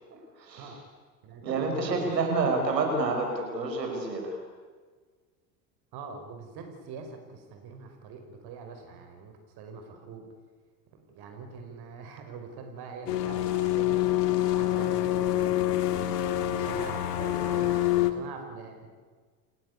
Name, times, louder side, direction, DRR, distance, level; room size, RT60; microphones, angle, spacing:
voice 1, 0.1-0.7 1.4-4.4, right 3 dB, 85° right, 2 dB, 6.0 m, -29 dB
voice 2, 1.2-2.2 5.9-10.3 10.9-14.0 14.5-18.9, right 4 dB, 50° right, 5 dB, 5.2 m, -43 dB
sound 1, 13.1-18.1, left 14 dB, 70° left, 2.4 m, -26 dB
29.5 x 16.5 x 8.4 m, 1.5 s
hypercardioid pair, 80°, 49 cm